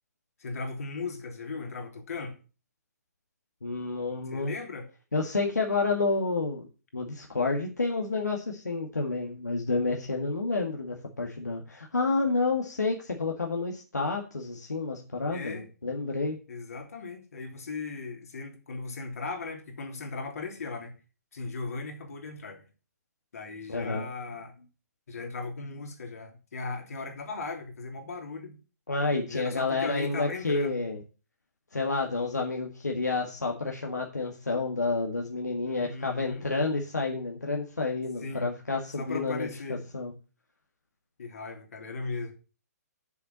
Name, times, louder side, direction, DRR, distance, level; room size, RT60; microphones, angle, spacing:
voice 1, 0.4-2.4 4.3-4.9 15.3-15.7 16.5-20.9 21.3-22.6 23.3-24.7 25.1-28.6 29.3-30.9 35.6-36.5 38.2-38.5 39.0-39.8 41.2-42.3, left 4 dB, 60° left, 3.0 m, -37 dB
voice 2, 3.6-4.5 5.1-6.7 6.9-16.4 23.7-24.1 28.9-31.0 31.7-40.1, left 3 dB, 80° left, 1.8 m, -29 dB
7.1 x 7.1 x 7.3 m
figure-of-eight pair, 125°, 9 cm